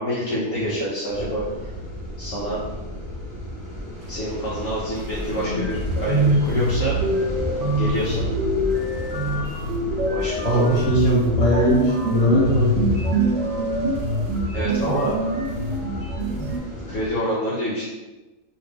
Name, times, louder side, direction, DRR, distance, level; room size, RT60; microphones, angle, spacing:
voice 1, 0.0-1.4 2.2-2.6 4.1-7.0 7.7-8.4 10.1-11.0 14.5-15.1 16.9-17.8, equal, 60° left, -8 dB, 0.9 m, -27 dB
sound 1, 1.1-17.1, left 1 dB, 25° right, 1.0 m, -35 dB
sound 2, 5.0-5.1 5.3-16.6, right 1 dB, 80° right, 1.1 m, -24 dB
voice 2, 10.4-12.9, equal, 25° left, -6 dB, 1.0 m, -20 dB
2.8 x 2.5 x 3.4 m, 1.1 s
omnidirectional pair, 1.6 m